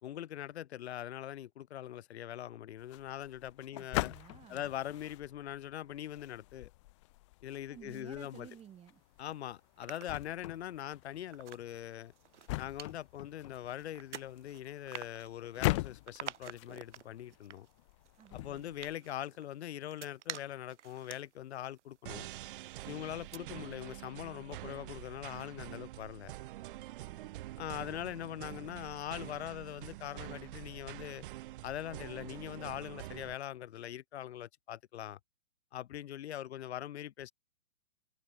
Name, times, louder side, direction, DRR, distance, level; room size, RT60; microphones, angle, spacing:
voice 1, 0.0-4.1 4.5-6.7 7.4-8.5 9.2-12.1 12.6-17.7 18.3-22.3 22.9-26.3 27.6-31.2 31.6-35.2 35.7-37.3, left 11 dB, 55° left, 3.3 m, -42 dB
sound 1, 2.8-19.0, left 21 dB, 25° left, 0.7 m, -42 dB
voice 2, 3.7-4.6 7.7-9.0 18.2-18.8 27.0-27.5, right 10 dB, 15° right, 7.4 m, -54 dB
sound 2, 8.3-9.2 9.6-22.8 23.1-23.4, right 10 dB, 60° right, 3.6 m, -50 dB
sound 3, 22.1-33.3, right 16 dB, 40° right, 3.9 m, -46 dB
hypercardioid pair, 155°, 39 cm